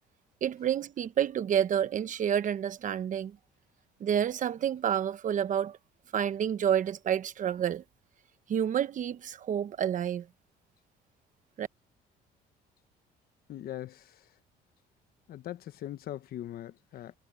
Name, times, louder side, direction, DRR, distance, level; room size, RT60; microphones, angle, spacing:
voice 1, 0.4-3.4 4.0-5.8 6.1-7.8 8.5-10.3 11.6-11.7, right 9 dB, 50° right, 1.1 m, -29 dB
voice 2, 13.5-14.2 15.3-17.2, left 12 dB, 60° left, 1.2 m, -41 dB
cardioid pair, 110°, 17 cm